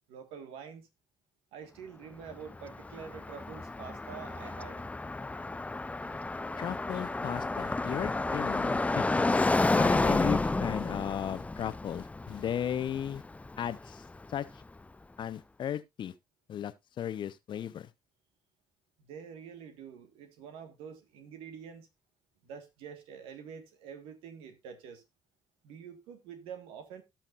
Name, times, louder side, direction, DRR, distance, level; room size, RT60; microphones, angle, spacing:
voice 1, 0.1-0.9 1.5-4.8 19.0-21.9 22.4-25.0 25.6-27.0, right 7 dB, 70° right, 1.6 m, -46 dB
Car passing by, 2.3-14.3, left 2 dB, 15° left, 0.5 m, -31 dB
voice 2, 6.6-9.1 9.7-13.2 13.6-14.5 15.2-16.1 16.5-17.9, left 9 dB, 55° left, 0.9 m, -36 dB
17.5 x 5.8 x 2.5 m
hypercardioid pair, 45°, 10 cm